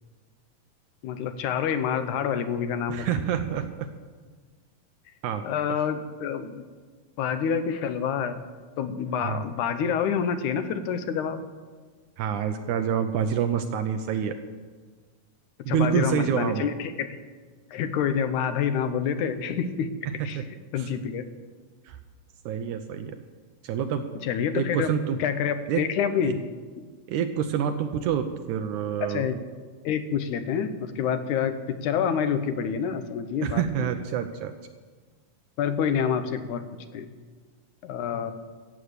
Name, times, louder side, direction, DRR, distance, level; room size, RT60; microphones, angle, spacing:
voice 1, 1.0-3.2 5.4-6.6 7.2-8.4 8.8-11.5 15.7-17.2 17.7-19.9 20.2-20.4 20.7-21.2 24.2-24.9 25.2-26.4 29.0-29.4 29.8-33.6 35.6-36.6 36.9-37.1 37.8-38.3, left 7 dB, 75° left, 10 dB, 2.1 m, -27 dB
voice 2, 2.9-3.9 5.2-5.8 9.2-9.4 12.2-14.4 15.7-16.7 20.2-20.5 20.8-20.9 21.9-22.0 22.5-23.2 23.6-24.1 24.5-25.2 25.7-25.9 26.2-26.3 27.1-29.3 33.4-34.5, right 8 dB, 75° right, 7 dB, 1.9 m, -27 dB
15.0 x 7.2 x 8.1 m, 1.5 s
omnidirectional pair, 3.8 m